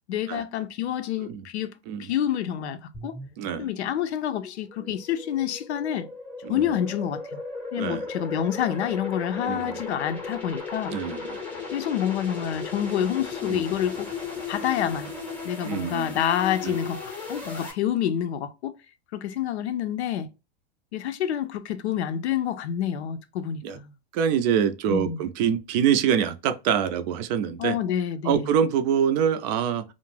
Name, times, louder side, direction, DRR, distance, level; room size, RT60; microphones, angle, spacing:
voice 1, 0.1-1.7 2.0-3.2 3.6-6.1 6.5-7.2 7.7-11.0 11.7-14.1 14.5-15.1 15.4-18.7 19.1-20.3 20.9-23.9 24.9-25.2 27.6-28.5, left 10 dB, 85° left, 0.5 m, -28 dB
sound 1, 2.9-17.7, left 4 dB, 5° left, 0.7 m, -36 dB
voice 2, 3.4-3.7 6.4-6.8 7.8-8.0 9.4-9.8 10.9-11.4 13.4-13.6 15.6-16.2 16.6-16.8 23.6-23.8 24.1-27.8 28.2-29.8, right 8 dB, 45° right, 0.4 m, -25 dB
2.4 x 2.1 x 3.1 m
hypercardioid pair, 130°, 33 cm